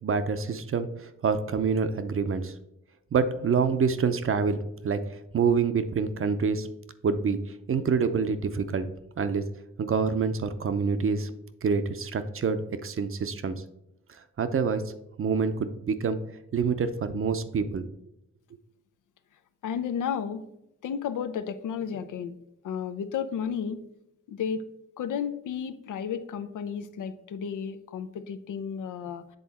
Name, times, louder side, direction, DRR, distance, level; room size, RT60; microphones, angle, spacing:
voice 1, 0.0-2.5 3.1-6.7 7.0-7.4 7.7-8.9 9.2-9.4 9.8-11.3 11.6-13.5 14.4-14.9 15.2-16.2 16.5-17.8, right 5 dB, 45° right, 10 dB, 0.6 m, -26 dB
voice 2, 19.6-20.4 20.8-22.4 22.6-23.8 24.3-24.6 25.0-29.2, left 7 dB, 80° left, 11 dB, 0.5 m, -32 dB
7.9 x 3.6 x 4.1 m, 0.83 s
cardioid pair, 70°, 30 cm